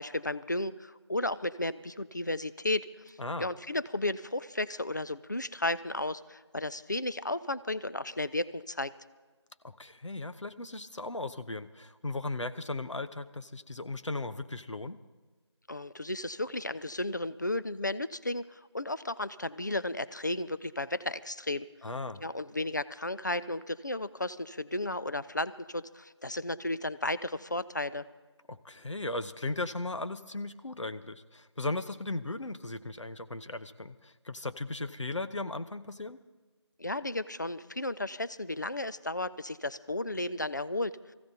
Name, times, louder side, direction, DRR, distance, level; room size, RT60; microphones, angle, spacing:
voice 1, 0.0-8.9 15.7-21.7 22.2-28.0 36.8-41.1, left 2 dB, 40° left, 15 dB, 0.4 m, -34 dB
voice 2, 9.6-15.0 21.8-22.2 28.5-36.2, left 2 dB, 85° left, 11 dB, 1.0 m, -37 dB
23.5 x 15.5 x 2.8 m, 1.3 s
figure-of-eight pair, 175°, 15 cm